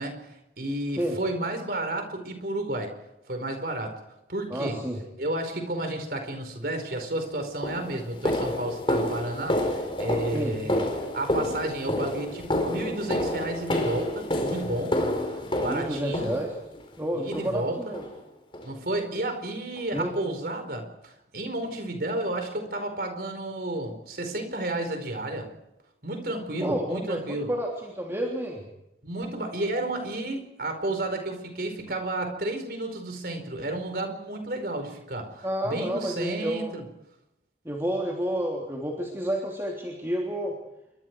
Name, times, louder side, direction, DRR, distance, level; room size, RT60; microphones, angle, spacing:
voice 1, 0.0-3.0 3.3-3.9 4.3-4.8 5.2-10.8 11.1-15.0 15.3-16.4 17.1-17.8 18.6-25.5 26.0-27.5 29.0-36.8, right 1 dB, 55° right, 6 dB, 4.9 m, -32 dB
voice 2, 4.5-5.0 10.3-10.5 15.6-16.5 17.0-18.0 19.9-20.1 26.6-28.6 35.4-36.8 37.6-40.5, equal, 15° right, -1 dB, 3.2 m, -30 dB
sound 1, 6.9-7.1 7.6-16.8 17.3-17.7 17.9-18.1 18.5-18.7 19.1-19.2 19.8-19.9, left 1 dB, 30° left, 4.3 m, -29 dB
28.5 x 24.0 x 4.8 m, 0.87 s
head